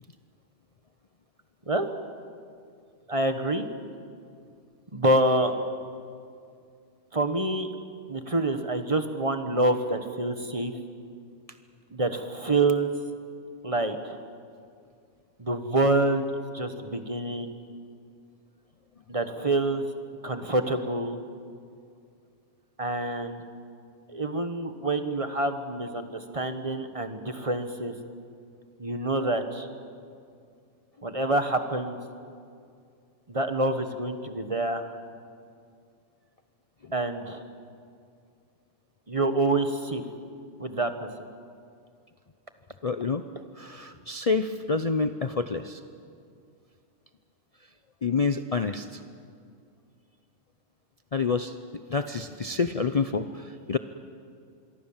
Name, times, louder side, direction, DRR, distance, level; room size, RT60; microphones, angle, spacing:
voice 1, 3.1-3.7 4.9-5.5 7.1-7.7 8.1-10.8 11.9-12.9 13.6-14.2 15.4-16.2 16.5-17.5 19.1-19.8 20.2-21.2 22.8-23.4 24.1-27.9 28.8-29.7 31.0-32.0 33.3-34.9 36.9-37.4 39.1-40.0 40.6-41.1, right 2 dB, 20° right, 8 dB, 1.3 m, -27 dB
voice 2, 42.8-43.2 43.5-45.8 48.0-49.0 51.1-51.6 51.9-53.8, left 4 dB, 60° left, 9 dB, 0.3 m, -28 dB
25.5 x 23.0 x 7.4 m, 2.3 s
omnidirectional pair, 1.7 m